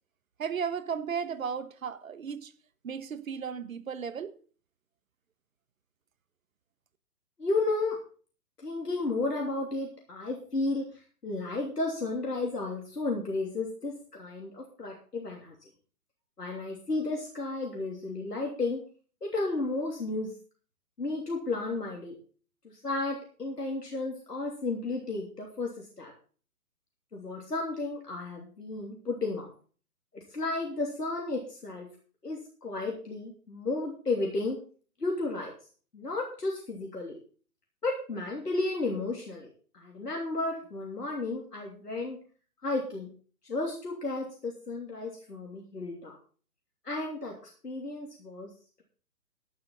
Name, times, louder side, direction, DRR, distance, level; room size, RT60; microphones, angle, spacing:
voice 1, 0.4-2.5 2.8-4.4, right 7 dB, 60° right, 1.3 m, -35 dB
voice 2, 7.4-8.0 8.6-10.9 11.2-15.6 16.4-18.8 19.2-20.3 21.0-22.2 22.6-26.1 27.1-29.5 30.1-31.9 32.2-34.6 35.0-35.5 35.9-37.2 37.8-42.2 42.6-43.1 43.4-46.1 46.8-48.5, left 2 dB, 80° left, 3.1 m, -33 dB
11.5 x 11.5 x 4.0 m
figure-of-eight pair, 130°, 47 cm